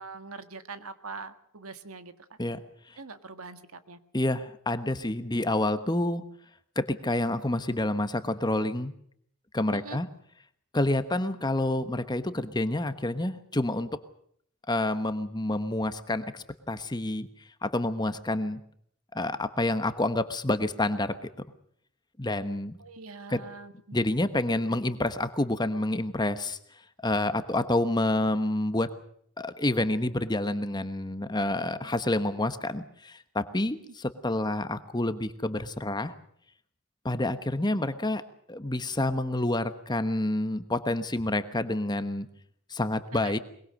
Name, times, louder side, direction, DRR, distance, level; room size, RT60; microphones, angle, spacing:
voice 1, 0.0-2.1 3.0-4.0 9.7-10.0 22.8-24.0 43.1-43.4, right 4 dB, 80° right, 10 dB, 1.7 m, -43 dB
voice 2, 4.1-6.2 6.8-8.9 9.5-10.1 10.7-14.0 14.7-17.3 17.6-18.6 19.1-21.3 22.2-22.8 23.3-23.4 23.9-26.6 27.0-28.9 29.4-36.1 37.0-38.2 38.5-42.3 42.7-43.4, left 1 dB, 20° left, 11 dB, 1.2 m, -28 dB
22.5 x 22.0 x 6.5 m, 0.66 s
head